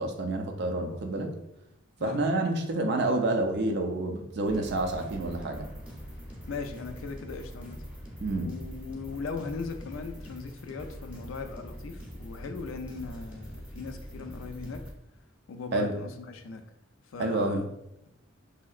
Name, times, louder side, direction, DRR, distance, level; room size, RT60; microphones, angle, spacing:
voice 1, 0.0-1.3 2.0-5.7 8.2-8.5 15.7-15.9 17.2-17.6, right 2 dB, 55° right, 4 dB, 0.4 m, -28 dB
sound 1, 4.5-14.9, equal, 5° right, 0.7 m, -43 dB
voice 2, 6.5-7.8 8.3-14.8 15.5-16.6 17.1-17.7, left 4 dB, 70° left, 6 dB, 0.4 m, -38 dB
3.1 x 2.7 x 2.4 m, 0.83 s
head